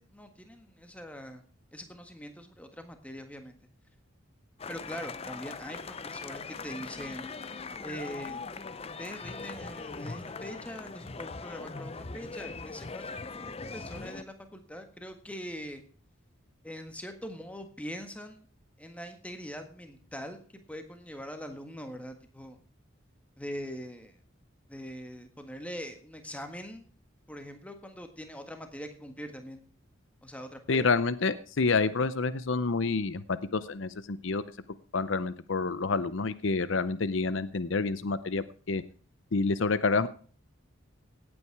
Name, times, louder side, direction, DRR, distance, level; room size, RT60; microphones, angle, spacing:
voice 1, 0.0-1.4 1.7-3.6 4.7-7.3 7.8-8.4 8.8-15.8 16.6-18.5 18.8-22.6 23.4-24.2 24.7-26.9 27.3-29.6 30.2-30.9, equal, 5° left, 6 dB, 1.6 m, -42 dB
sound 1, 4.6-14.2, left 4 dB, 30° left, 0.6 m, -40 dB
voice 2, 30.7-34.4 34.9-38.8 39.3-40.1, left 4 dB, 65° left, 15 dB, 0.6 m, -28 dB
17.5 x 8.7 x 4.7 m, 0.42 s
head